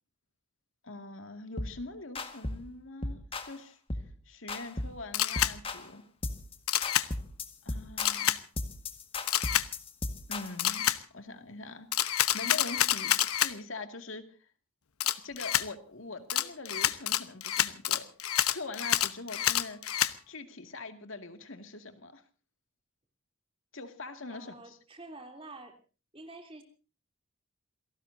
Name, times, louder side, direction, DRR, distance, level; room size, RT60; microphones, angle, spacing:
voice 1, 0.8-6.0 7.6-8.4 10.3-10.9 11.1-11.9 12.2-14.5 15.2-18.1 18.5-19.8 20.3-22.2 23.7-24.8, left 3 dB, 65° left, 7 dB, 2.2 m, -43 dB
sound 1, 1.6-1.8 2.1-2.7 3.0-3.5 3.9-4.1 4.5-5.0 5.4-5.9 6.2-6.5 6.8-10.8, left 2 dB, 25° left, 1.6 m, -36 dB
Camera, 5.1-5.5 6.7-7.1 8.0-8.4 9.3-9.7 10.6-11.0 11.9-13.5 15.0-15.7 16.3-20.1, left 11 dB, 90° left, 1.1 m, -28 dB
voice 2, 24.3-25.8 26.1-26.6, right 2 dB, 25° right, 5 dB, 3.2 m, -48 dB
28.5 x 18.0 x 2.7 m, 0.36 s
head